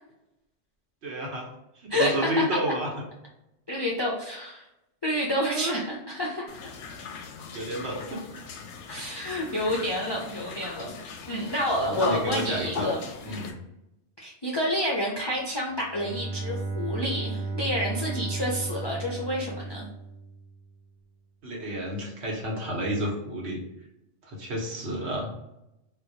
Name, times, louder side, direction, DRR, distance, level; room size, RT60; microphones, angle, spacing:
voice 1, 1.0-1.5 1.8-2.9 5.3-5.8 7.5-8.3 10.8-10.9 11.7-12.9 13.2-13.6 21.4-23.6 24.2-25.3, right 1 dB, 75° right, -1 dB, 1.2 m, -30 dB
voice 2, 1.9-2.3 3.7-4.7 5.0-6.6 8.9-10.9 11.3-13.4 14.2-19.9, left 1 dB, 45° left, -4 dB, 0.3 m, -29 dB
sound 1, 6.5-13.5, left 6 dB, 90° left, 0.9 m, -39 dB
Bowed string instrument, 15.7-20.7, right 3 dB, 45° right, 0.6 m, -34 dB
4.0 x 2.2 x 2.7 m, 0.89 s
omnidirectional pair, 1.2 m